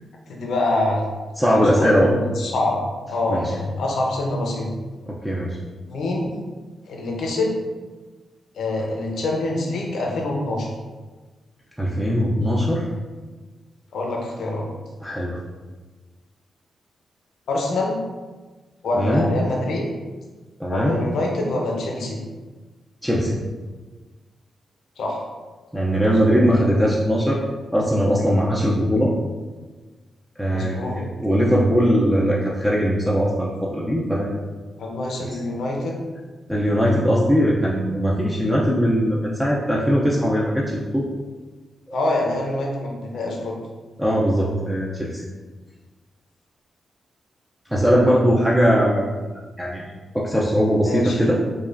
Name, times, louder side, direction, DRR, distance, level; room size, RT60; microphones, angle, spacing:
voice 1, 0.3-1.0 1.4-2.8 3.1-4.7 5.9-6.4 6.9-7.6 8.5-10.7 13.9-14.7 17.5-18.0 18.8-19.9 20.7-22.2 25.0-25.2 26.0-26.5 30.5-31.0 34.8-36.0 41.9-43.6 50.8-51.2, left 2 dB, 80° left, 0 dB, 0.7 m, -25 dB
voice 2, 1.4-2.1 3.3-3.4 5.1-5.6 11.8-12.9 15.0-15.4 18.9-19.3 20.6-21.0 23.0-23.3 25.7-27.4 27.7-29.1 30.4-34.4 36.5-40.6 40.9-41.1 41.9-42.0 44.0-45.2 47.7-49.3 49.6-49.9 50.1-51.4, equal, 5° right, -5 dB, 0.4 m, -20 dB
5.0 x 2.4 x 2.5 m, 1.3 s
wide cardioid pair, 125°, 0 cm